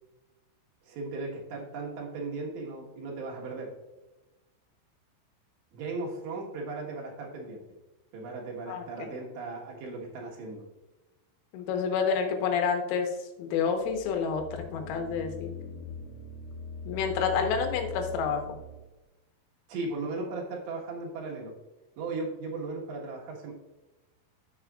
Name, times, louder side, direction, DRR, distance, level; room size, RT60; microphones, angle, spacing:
voice 1, 0.9-3.7 5.7-7.6 8.1-10.6 19.7-21.5 22.0-23.5, right 3 dB, 70° right, -1 dB, 3.4 m, -37 dB
voice 2, 8.7-9.1 11.5-13.1 13.4-15.5 16.9-18.4, left 6 dB, 90° left, 4 dB, 3.8 m, -29 dB
sound 1, 13.8-18.9, left 4 dB, 75° left, 2.5 m, -41 dB
15.0 x 6.4 x 2.4 m, 1.1 s
omnidirectional pair, 5.8 m